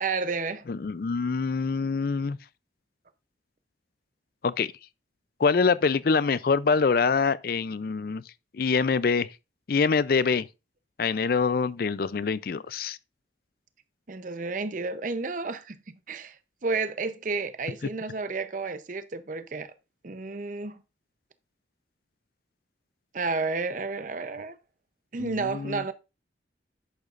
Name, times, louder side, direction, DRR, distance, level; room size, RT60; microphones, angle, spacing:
voice 1, 0.0-0.6 14.1-16.4 16.6-19.7 20.0-20.8 23.1-24.5 25.1-25.9, right 4 dB, 45° right, 0.6 m, -31 dB
voice 2, 0.7-2.4 4.4-4.7 5.4-8.2 8.5-9.3 9.7-10.5 11.0-13.0 25.2-25.8, left 5 dB, 50° left, 0.4 m, -25 dB
10.5 x 8.1 x 2.5 m
head